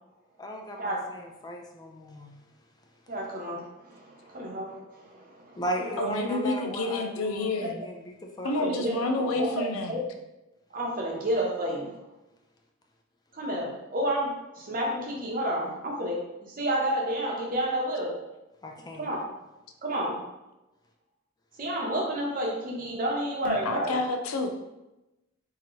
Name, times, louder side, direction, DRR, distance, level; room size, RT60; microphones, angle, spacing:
voice 1, 0.4-2.3 5.5-8.7 18.6-19.1, equal, 20° left, 1 dB, 0.4 m, -36 dB
voice 2, 3.1-6.1 7.6-7.9 8.4-10.0 10.7-12.0 13.3-18.2 19.0-19.2 19.8-20.2 21.6-24.0, right 1 dB, 45° right, -2 dB, 0.9 m, -31 dB
voice 3, 6.0-7.8 8.4-10.0 23.4-24.6, left 2 dB, 90° left, 5 dB, 0.5 m, -29 dB
3.7 x 2.9 x 3.0 m, 0.98 s
head